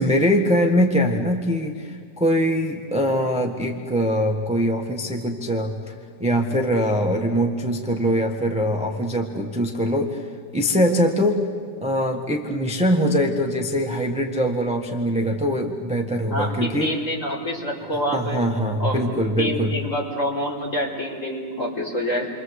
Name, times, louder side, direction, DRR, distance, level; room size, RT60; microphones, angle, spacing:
voice 1, 0.0-5.9 6.2-11.4 11.8-16.9 18.1-19.8, equal, 5° right, 1 dB, 1.3 m, -22 dB
voice 2, 16.3-18.4 18.8-22.3, equal, 35° left, -2 dB, 4.7 m, -27 dB
29.0 x 24.0 x 8.2 m, 2.1 s
omnidirectional pair, 2.3 m